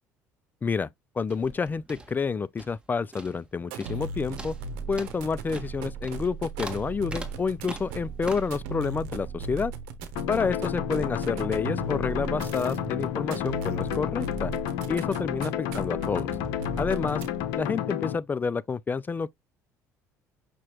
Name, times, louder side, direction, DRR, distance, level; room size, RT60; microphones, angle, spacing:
voice 1, 1.2-4.5 4.9-9.7 10.3-14.5 14.9-16.3 16.8-17.2 17.6-19.3, left 5 dB, 25° left, 0.4 m, -29 dB
sound 1, 1.2-2.9 3.1-3.5 3.8-4.1 4.4-8.6, right 2 dB, 15° right, 1.5 m, -42 dB
sound 2, 3.6-17.6, right 4 dB, 85° right, 0.9 m, -37 dB
sound 3, 10.2-18.2, left 11 dB, 80° left, 0.8 m, -31 dB
6.1 x 2.9 x 3.0 m
supercardioid pair, 80°, 7 cm